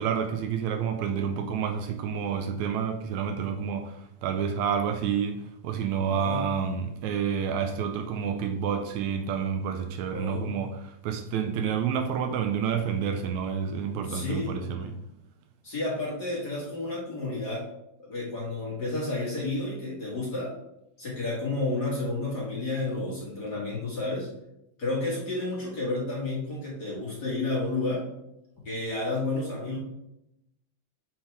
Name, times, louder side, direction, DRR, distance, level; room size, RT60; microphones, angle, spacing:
voice 1, 0.0-15.0, right 7 dB, 80° right, 7 dB, 1.9 m, -29 dB
voice 2, 6.1-6.5 10.1-10.6 14.1-14.6 15.6-17.6 18.0-20.5 21.0-24.3 24.8-28.1 28.7-29.8, left 2 dB, 40° left, -5 dB, 1.8 m, -31 dB
7.2 x 5.6 x 3.3 m, 0.84 s
omnidirectional pair, 3.4 m